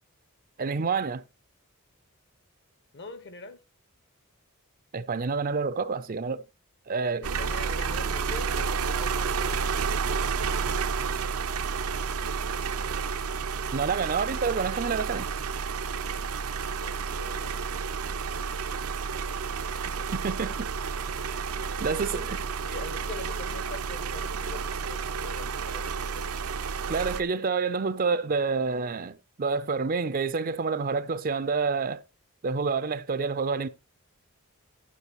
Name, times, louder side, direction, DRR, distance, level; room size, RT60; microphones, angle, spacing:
voice 1, 0.6-1.2 4.9-6.4 6.9-7.3 13.7-15.3 19.8-20.7 21.3-21.4 21.8-22.4 26.9-32.0 32.4-33.7, right 4 dB, 40° right, 0.5 m, -28 dB
voice 2, 2.9-3.6 7.2-10.1 16.8-17.9 20.0-20.6 21.7-26.4, left 3 dB, 55° left, 1.1 m, -44 dB
sound 1, 7.2-27.2, right 5 dB, 80° right, 0.7 m, -31 dB
11.0 x 10.0 x 3.0 m
head